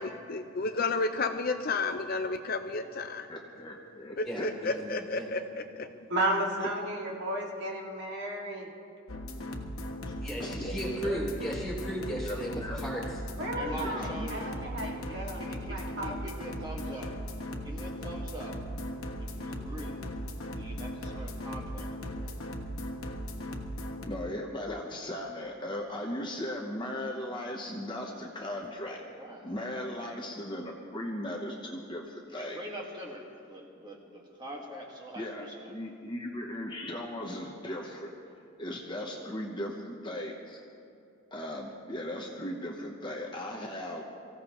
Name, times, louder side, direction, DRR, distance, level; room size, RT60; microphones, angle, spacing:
voice 1, 0.0-3.3 4.2-5.9, left 3 dB, 45° left, 7 dB, 0.5 m, -32 dB
voice 2, 3.3-4.5 10.4-10.7 11.0-11.2 12.2-12.8 13.7-14.3 24.1-32.6 35.2-38.1 38.6-40.6 41.3-44.0, left 1 dB, 20° left, 0 dB, 0.9 m, -37 dB
voice 3, 4.2-5.4 10.2-13.0, equal, ahead, -5 dB, 3.5 m, -35 dB
voice 4, 6.1-8.7 13.4-16.3, right 1 dB, 55° right, -3 dB, 2.3 m, -33 dB
sound 1, 9.1-24.1, equal, 80° left, 1.3 m, -38 dB
voice 5, 13.5-17.2 17.6-18.6 19.2-20.0 20.5-22.4 29.1-29.6 32.3-35.7, equal, 20° right, -1 dB, 1.8 m, -44 dB
24.0 x 15.5 x 3.1 m, 2.6 s
head